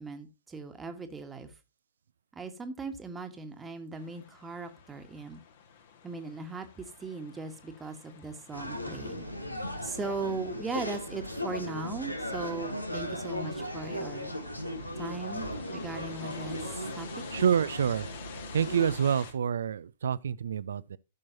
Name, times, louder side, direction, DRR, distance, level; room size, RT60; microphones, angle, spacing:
voice 1, 0.0-1.5 2.3-5.4 6.0-9.3 9.8-14.3 15.0-17.1, right 3 dB, 10° right, 1.5 m, -39 dB
sound 1, 3.9-19.3, left 7 dB, 50° left, 1.8 m, -50 dB
sound 2, 8.5-19.0, left 1 dB, 85° left, 1.5 m, -37 dB
voice 2, 17.3-18.1 18.5-21.0, right 8 dB, 60° right, 0.5 m, -27 dB
14.5 x 6.2 x 2.8 m
figure-of-eight pair, 110°, 0 cm